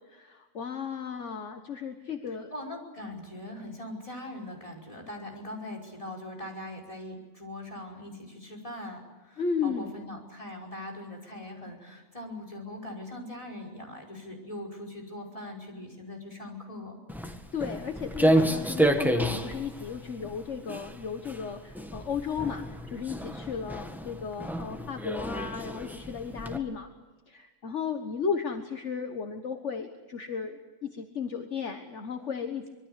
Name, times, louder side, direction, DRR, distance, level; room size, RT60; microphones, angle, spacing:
voice 1, 0.1-2.5 9.4-9.9 17.2-26.9 27.3-32.7, left 6 dB, 60° left, 6 dB, 1.7 m, -35 dB
voice 2, 2.5-17.0, left 1 dB, 25° left, 2 dB, 5.5 m, -41 dB
Walk footsteps, 17.1-26.6, right 1 dB, ahead, 1.7 m, -30 dB
25.5 x 22.0 x 8.2 m, 1.2 s
omnidirectional pair, 1.4 m